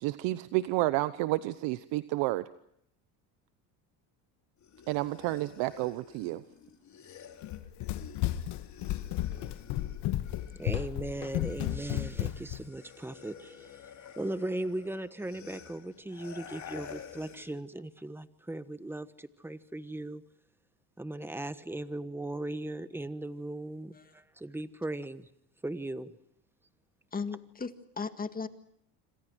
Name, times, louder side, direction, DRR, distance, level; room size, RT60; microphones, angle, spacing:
voice 1, 0.0-2.4 4.9-6.4, right 18 dB, 70° right, 14 dB, 1.0 m, -30 dB
sound 1, 4.6-10.8 11.1-17.6, left 7 dB, 40° left, 3.3 m, -51 dB
Run, 7.4-12.6, left 14 dB, 60° left, 1.7 m, -33 dB
voice 2, 10.5-13.8 14.2-20.2 21.0-25.3 25.6-26.1, right 1 dB, 5° right, 13 dB, 1.2 m, -38 dB
voice 3, 27.1-28.5, left 5 dB, 20° left, 9 dB, 1.8 m, -36 dB
27.0 x 26.0 x 6.3 m, 0.74 s
supercardioid pair, 115°, 45 cm